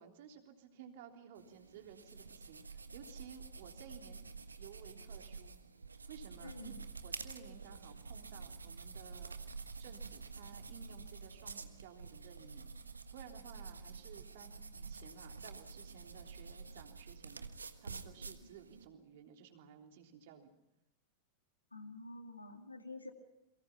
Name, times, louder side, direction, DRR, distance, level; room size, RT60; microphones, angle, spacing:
voice 1, 0.0-4.2 4.6-5.6 6.1-6.7 7.0-12.7 13.1-20.5, right 8 dB, 55° right, 3 dB, 3.5 m, -56 dB
sound 1, 1.4-18.8, right 4 dB, 75° right, 1.4 m, -49 dB
voice 2, 6.4-6.7 21.7-23.1, left 2 dB, 80° left, 6 dB, 2.2 m, -48 dB
29.5 x 23.5 x 5.8 m, 0.91 s
figure-of-eight pair, 90°, 0 cm